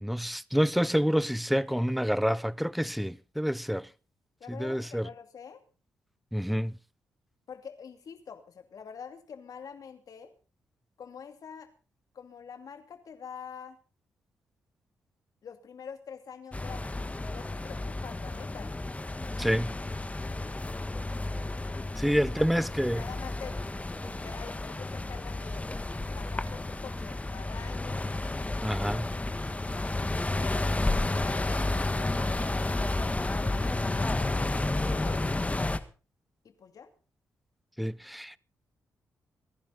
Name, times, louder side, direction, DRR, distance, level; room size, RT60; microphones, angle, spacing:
voice 1, 0.0-3.9 4.5-5.1 6.3-6.8 19.4-19.7 22.0-23.0 28.6-29.1 37.8-38.4, equal, ahead, 0.6 m, -28 dB
voice 2, 4.4-5.6 7.5-10.3 11.0-11.7 12.1-13.8 15.4-18.7 22.0-22.5 22.9-23.6 24.0-25.7 26.1-28.1 30.3-35.2 36.4-36.9, left 7 dB, 65° left, 2.6 m, -46 dB
sound 1, 16.5-35.8, left 2 dB, 20° left, 1.6 m, -31 dB
24.5 x 11.0 x 4.1 m
supercardioid pair, 50°, 7 cm